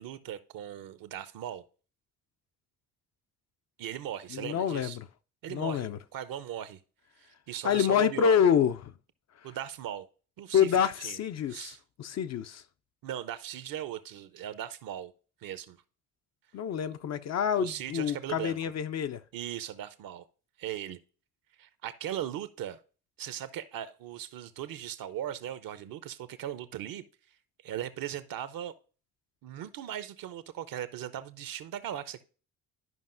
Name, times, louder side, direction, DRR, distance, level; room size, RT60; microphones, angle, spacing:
voice 1, 0.0-1.6 3.8-5.0 5.4-6.8 7.2-8.4 9.4-10.1 10.4-10.7 11.0-11.2 11.5-11.8 13.0-15.1 15.4-15.8 16.8-17.0 17.6-18.6 19.3-20.2 20.6-21.0 21.6-22.8 23.2-27.0 27.6-28.7 29.4-32.2, right 11 dB, 55° right, 0.7 m, -38 dB
voice 2, 4.3-5.1 5.5-6.0 7.6-8.9 10.5-12.6 16.5-19.2, left 8 dB, 40° left, 0.5 m, -27 dB
12.5 x 5.3 x 2.5 m
hypercardioid pair, 45°, 41 cm